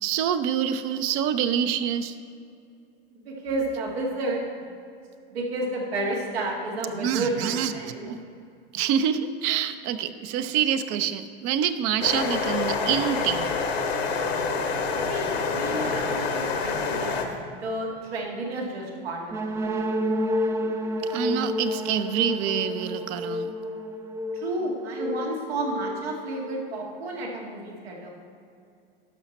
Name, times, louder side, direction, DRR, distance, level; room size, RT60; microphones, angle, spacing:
voice 1, 0.0-2.1 6.9-8.2 8.7-13.5 21.1-23.5, right 9 dB, 45° right, 11 dB, 0.6 m, -26 dB
voice 2, 3.1-4.7 5.3-8.1 15.1-19.7 24.3-28.1, right 2 dB, 85° right, -1 dB, 2.1 m, -31 dB
sound 1, 12.0-17.2, left 4 dB, 85° left, 1.2 m, -27 dB
sound 2, 19.3-27.0, left 1 dB, 10° right, 0.3 m, -30 dB
12.0 x 5.8 x 4.2 m, 2.4 s
hypercardioid pair, 115°, 30 cm